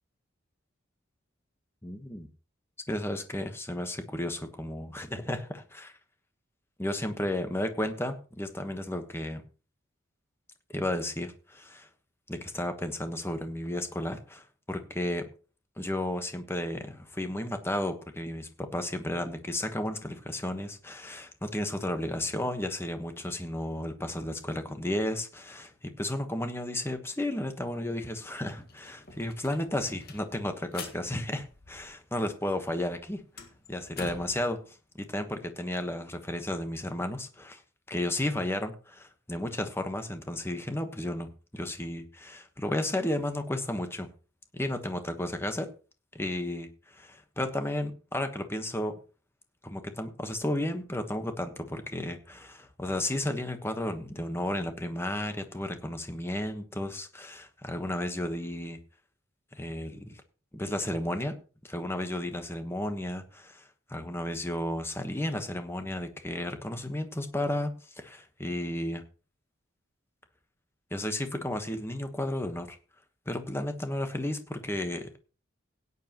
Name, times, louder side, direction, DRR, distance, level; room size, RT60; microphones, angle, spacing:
voice 1, 1.8-2.3 2.9-5.9 6.8-9.4 10.7-11.9 12.3-15.3 15.8-33.2 33.7-34.7 35.1-37.6 37.9-44.1 44.5-45.7 46.1-49.0 49.6-58.8 59.5-60.2 60.5-61.4 61.6-63.6 63.9-69.0 70.9-72.8 73.3-75.1, left 1 dB, 10° left, 7 dB, 1.2 m, -33 dB
sound 1, 27.9-28.0 28.3-32.2 32.5-34.4, left 4 dB, 50° left, 1.8 m, -46 dB
17.0 x 9.6 x 3.0 m, 0.36 s
head